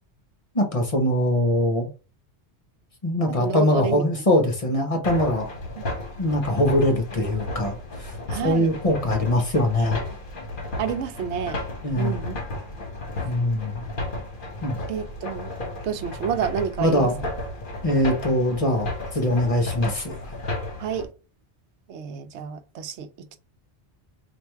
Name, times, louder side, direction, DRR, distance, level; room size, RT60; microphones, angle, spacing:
voice 1, 0.5-1.9 3.0-5.5 6.2-8.1 8.4-10.0 11.8-12.2 13.2-13.8 14.6-14.9 16.8-17.2 17.8-20.2, left 1 dB, 35° left, 0.8 m, -22 dB
voice 2, 3.3-4.0 5.8-5.9 8.3-8.7 10.8-11.6 11.9-12.4 14.9-15.5 15.8-17.1 20.8-21.1 21.9-23.4, right 7 dB, 85° right, 0.9 m, -29 dB
sound 1, 5.0-21.1, left 2 dB, 50° left, 1.2 m, -34 dB
3.3 x 2.6 x 4.4 m
omnidirectional pair, 1.1 m